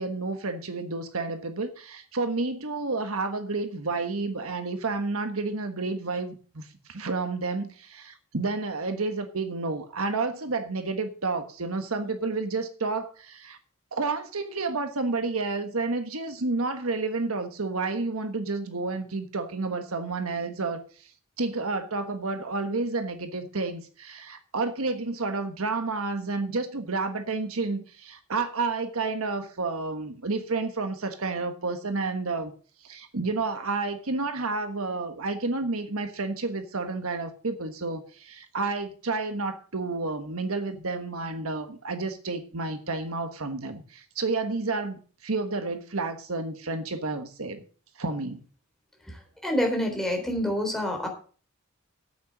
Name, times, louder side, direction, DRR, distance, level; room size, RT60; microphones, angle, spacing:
voice 1, 0.0-13.6 13.9-21.1 21.4-32.5 32.8-47.6 48.0-48.4, right 3 dB, 70° right, 8 dB, 1.3 m, -30 dB
voice 2, 49.4-51.1, equal, ahead, 1 dB, 3.7 m, -27 dB
9.0 x 8.9 x 6.4 m, 0.40 s
head